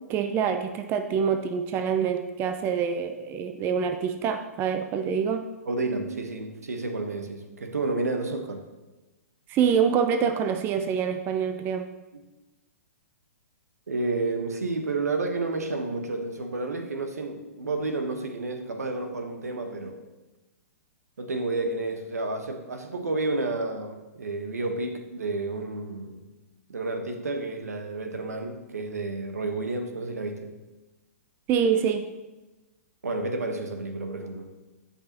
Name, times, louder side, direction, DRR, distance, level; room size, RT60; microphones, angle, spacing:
voice 1, 0.1-5.4 9.5-11.9 31.5-32.0, right 7 dB, 25° right, 0.5 m, -25 dB
voice 2, 5.7-8.7 13.9-20.0 21.2-26.2 26.7-30.5 33.0-34.5, right 3 dB, 75° right, 1.2 m, -30 dB
16.0 x 5.6 x 2.9 m
figure-of-eight pair, 120°, 8 cm